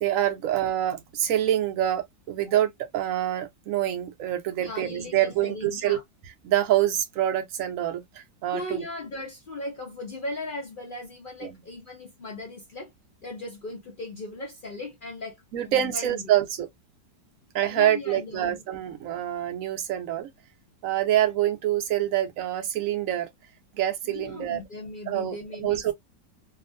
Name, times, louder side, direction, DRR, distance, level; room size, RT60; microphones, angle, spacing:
voice 1, 0.0-6.0 6.4-8.8 11.4-11.6 15.5-16.7 17.5-20.3 20.8-23.3 23.7-24.6 25.1-25.9, right 12 dB, 65° right, 0.8 m, -26 dB
voice 2, 4.6-6.0 8.5-12.9 13.2-16.3 17.7-18.6 24.0-25.9, left 2 dB, 60° left, 0.5 m, -38 dB
2.8 x 2.5 x 2.5 m
omnidirectional pair, 1.9 m